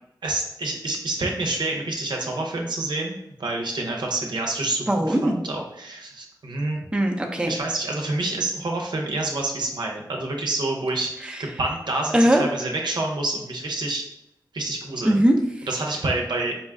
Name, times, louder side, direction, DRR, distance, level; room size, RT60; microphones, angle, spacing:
voice 1, 0.2-6.9 7.5-11.1 11.4-14.0 14.5-15.1 15.7-16.6, right 2 dB, 75° right, 0 dB, 0.7 m, -28 dB
voice 2, 4.9-5.3 6.9-7.6 11.2-11.4 12.1-12.4 15.0-15.7, right 1 dB, 10° right, 2 dB, 0.6 m, -20 dB
4.1 x 2.2 x 3.5 m, 0.80 s
cardioid pair, 40°, 8 cm